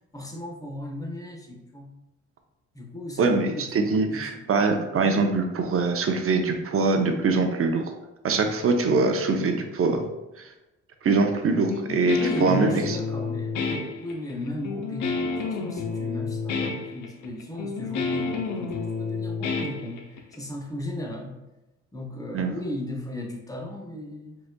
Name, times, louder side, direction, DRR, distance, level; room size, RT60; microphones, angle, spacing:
voice 1, 0.1-1.9 2.7-4.4 12.2-21.4 21.9-24.4, left 1 dB, 10° left, 1 dB, 0.9 m, -35 dB
voice 2, 3.2-7.9 8.2-10.0 10.4-10.5 11.0-13.0 22.3-22.5, right 4 dB, 45° right, 5 dB, 0.7 m, -23 dB
Guitar, 11.7-20.4, left 4 dB, 80° left, 0.7 m, -30 dB
4.9 x 3.9 x 2.2 m, 0.99 s
cardioid pair, 90°, 30 cm